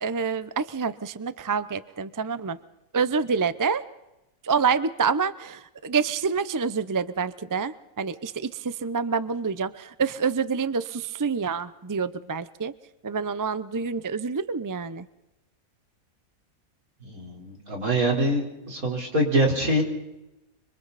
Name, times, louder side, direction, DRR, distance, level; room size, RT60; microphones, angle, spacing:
voice 1, 0.0-2.6 2.9-3.8 4.4-12.7 13.0-15.1, right 5 dB, 25° right, 14 dB, 0.4 m, -27 dB
voice 2, 17.0-19.8, right 1 dB, 75° right, 0 dB, 4.8 m, -24 dB
26.0 x 26.0 x 4.1 m, 0.95 s
omnidirectional pair, 1.5 m